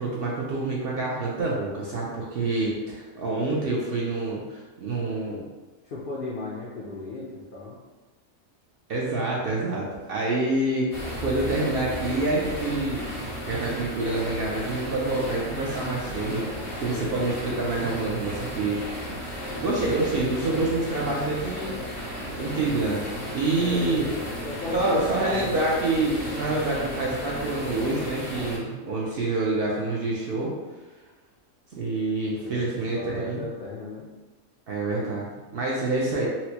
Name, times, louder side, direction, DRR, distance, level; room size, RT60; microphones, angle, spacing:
voice 1, 0.0-5.4 8.9-10.9 11.2-13.0 13.5-16.5 16.8-19.1 19.6-21.7 22.3-24.1 24.7-30.5 31.7-33.4 34.7-36.3, right 2 dB, 60° right, -3 dB, 0.6 m, -27 dB
voice 2, 5.8-7.8 16.5-17.4 23.6-25.7 32.4-32.7 32.9-34.1, left 2 dB, 60° left, -5 dB, 0.6 m, -35 dB
sound 1, 10.9-28.6, equal, 85° left, 1.7 m, -34 dB
4.2 x 2.0 x 2.8 m, 1.2 s
omnidirectional pair, 1.3 m